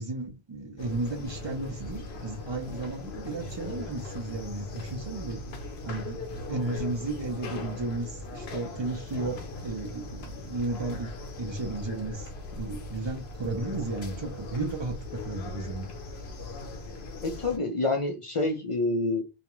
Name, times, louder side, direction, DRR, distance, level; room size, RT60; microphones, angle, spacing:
voice 1, 0.0-5.4 5.8-11.1 11.4-12.3 12.6-15.9, right 3 dB, 35° right, 0.4 m, -34 dB
sound 1, 0.8-17.6, left 2 dB, 75° left, 0.9 m, -39 dB
voice 2, 17.2-19.2, left 2 dB, 45° left, 0.4 m, -27 dB
2.5 x 2.2 x 2.9 m
omnidirectional pair, 1.1 m